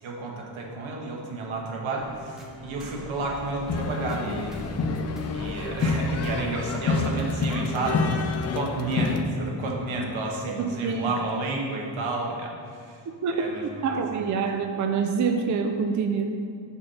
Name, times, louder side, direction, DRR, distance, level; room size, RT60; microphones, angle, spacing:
voice 1, 0.0-4.7 5.3-13.0 13.3-13.6 13.9-14.3, right 2 dB, 80° right, -1 dB, 1.4 m, -31 dB
sound 1, 2.0-7.1, right 1 dB, ahead, 0.7 m, -44 dB
sound 2, 3.7-9.2, left 4 dB, 35° left, 0.4 m, -27 dB
voice 2, 13.2-16.3, right 5 dB, 40° right, 4 dB, 0.5 m, -26 dB
6.9 x 5.5 x 4.2 m, 2.4 s
cardioid pair, 135°, 47 cm